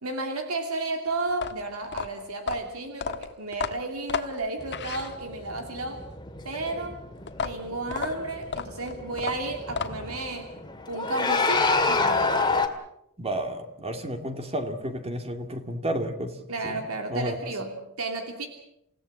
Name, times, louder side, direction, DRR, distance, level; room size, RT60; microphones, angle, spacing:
voice 1, 0.0-6.0 6.4-7.0 7.4-10.5 10.9-12.4 16.5-18.5, right 2 dB, 70° right, 4 dB, 2.8 m, -32 dB
sound 1, 1.3-5.6 7.3-10.2, left 6 dB, 50° left, 1.5 m, -33 dB
sound 2, 4.6-12.7, left 3 dB, 20° left, 2.2 m, -29 dB
voice 2, 13.2-16.3 16.6-16.8 17.1-17.5, right 1 dB, 25° right, 6 dB, 2.3 m, -31 dB
28.5 x 17.0 x 7.6 m, 0.81 s
head